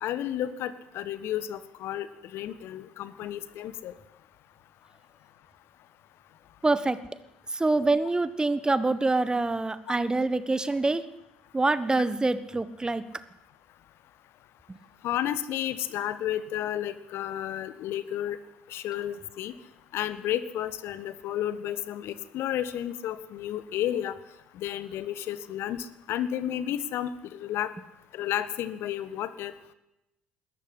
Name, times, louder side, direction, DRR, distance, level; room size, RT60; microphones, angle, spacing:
voice 1, 0.0-2.1 2.3-3.9 15.0-18.4 18.7-19.5 19.9-24.2 24.5-27.7 28.1-29.5, left 11 dB, 55° left, 15 dB, 1.4 m, -32 dB
voice 2, 6.6-7.0 7.5-11.0 11.5-13.0, right 2 dB, 15° right, 15 dB, 1.4 m, -25 dB
20.0 x 13.5 x 9.9 m, 0.89 s
figure-of-eight pair, 55°, 5 cm